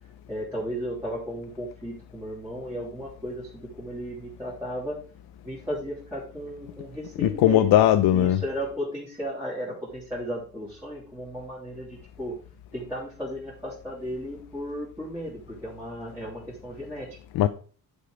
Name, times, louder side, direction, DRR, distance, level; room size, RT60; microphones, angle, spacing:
voice 1, 0.3-5.0 5.4-7.7 8.1-12.4 12.7-17.2, equal, 5° right, 2.9 m, -35 dB
voice 2, 7.2-8.4 17.3-17.5, left 12 dB, 80° left, 0.7 m, -19 dB
10.5 x 5.4 x 4.9 m
cardioid pair, 165°, 37 cm